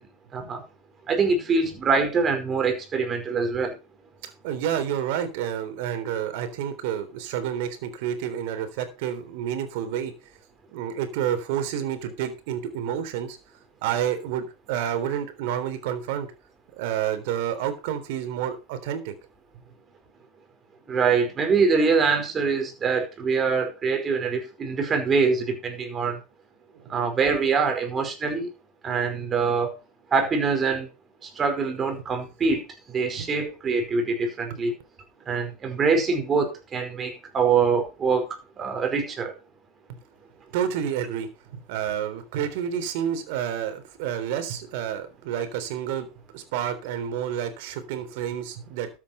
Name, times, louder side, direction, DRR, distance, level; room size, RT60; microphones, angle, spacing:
voice 1, 0.3-0.6 1.1-3.7 20.9-26.2 26.9-28.5 28.8-29.8 30.1-30.9 31.2-34.7 35.3-38.3 38.6-39.3, right 5 dB, 25° right, 4.9 m, -24 dB
voice 2, 4.2-10.1 10.7-13.4 13.8-16.3 16.8-19.1 26.7-26.9 33.2-33.3 40.5-41.3 41.7-46.1 46.3-48.9, right 9 dB, 60° right, 3.6 m, -29 dB
13.5 x 8.5 x 4.5 m
hypercardioid pair, 105°, 0 cm